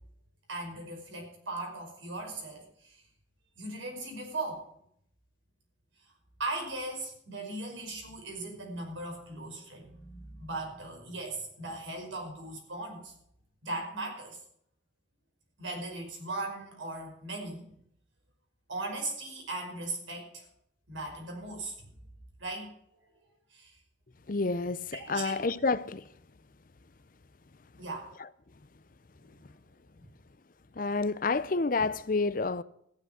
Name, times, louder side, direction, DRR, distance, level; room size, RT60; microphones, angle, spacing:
voice 1, 0.5-3.0 3.6-4.6 6.4-13.1 13.6-14.4 15.6-17.7 18.7-20.5 20.9-21.9 22.4-22.7 23.5-23.8 24.9-25.4 27.8-28.1, right 2 dB, 80° right, 5.4 m, -38 dB
voice 2, 24.3-26.1 30.8-32.6, left 3 dB, 45° left, 0.6 m, -29 dB
14.5 x 11.0 x 5.8 m
head